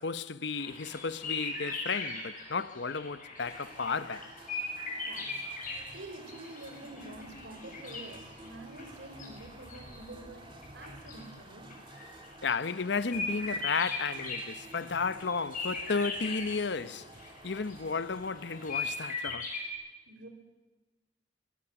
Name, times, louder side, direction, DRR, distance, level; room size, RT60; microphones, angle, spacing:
voice 1, 0.0-4.3 12.4-17.1 17.4-19.5, left 4 dB, 65° left, 0.8 m, -33 dB
sound 1, 0.5-16.7 17.1-19.7, left 3 dB, 45° left, 7.7 m, -39 dB
sound 2, 3.4-19.0, right 2 dB, 25° right, 2.1 m, -52 dB
voice 2, 4.9-5.4 5.9-10.5 10.7-11.7 20.1-20.3, right 2 dB, 75° right, 4.4 m, -47 dB
25.0 x 23.0 x 7.1 m
head